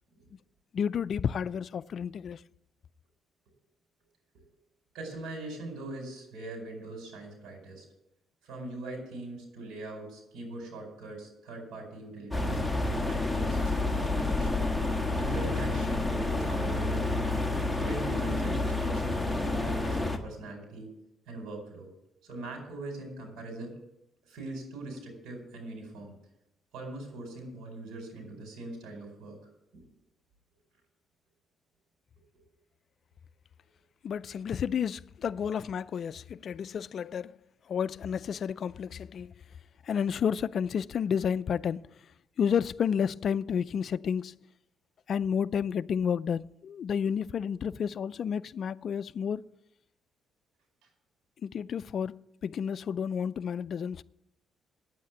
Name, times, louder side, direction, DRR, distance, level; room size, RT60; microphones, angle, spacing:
voice 1, 0.7-2.4 34.0-37.3 37.7-39.3 39.9-41.8 42.4-44.3 45.1-49.5 51.4-54.0, left 7 dB, 55° left, 0.4 m, -31 dB
voice 2, 4.9-7.8 8.4-12.6 13.1-14.7 15.1-17.2 17.7-20.9 21.3-21.9 22.2-23.8 24.2-26.1 26.7-29.4 32.3-32.4 34.5-34.6 50.8-50.9, right 2 dB, 85° right, 4.7 m, -42 dB
sound 1, 12.3-20.2, left 2 dB, 5° left, 1.4 m, -29 dB
9.5 x 8.5 x 9.2 m
cardioid pair, 90°, 0 cm